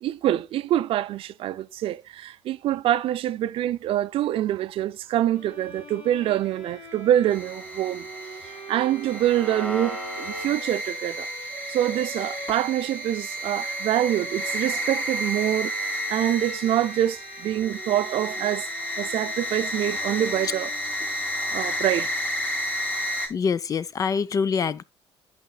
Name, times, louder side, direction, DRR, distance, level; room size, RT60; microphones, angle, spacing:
voice 1, 0.0-8.1 8.5-18.7 19.0-20.7 21.5-22.1, right 12 dB, 65° right, 0.4 m, -25 dB
Bowed string instrument, 5.3-21.4, equal, 75° left, 2.9 m, -44 dB
sound 1, 7.3-23.3, equal, 15° left, 2.6 m, -31 dB
voice 2, 23.3-24.8, left 6 dB, 35° left, 0.4 m, -25 dB
8.9 x 5.6 x 2.2 m
cardioid pair, 120°, 10 cm